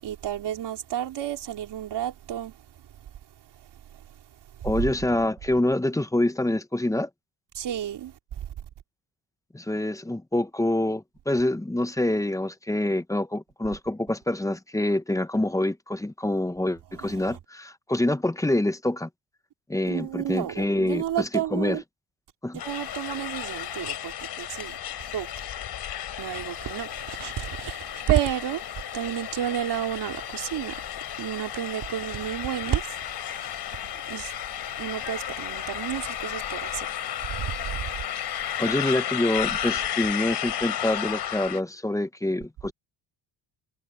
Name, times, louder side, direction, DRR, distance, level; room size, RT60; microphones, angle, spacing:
voice 1, 0.0-2.5 3.9-4.0 4.6-4.7 7.5-8.1 17.0-17.4 19.9-21.8 22.6-24.8 25.1-25.4 26.2-30.8 31.2-33.7 34.1-34.3 34.8-37.9, right 11 dB, 60° right, 3.5 m, -31 dB
voice 2, 4.6-7.1 9.5-19.1 19.7-21.8 22.4-22.6 37.8-37.9 38.6-42.7, left 1 dB, 5° left, 0.9 m, -26 dB
sound 1, 22.6-41.6, left 10 dB, 60° left, 3.7 m, -33 dB
cardioid pair, 100°, 45 cm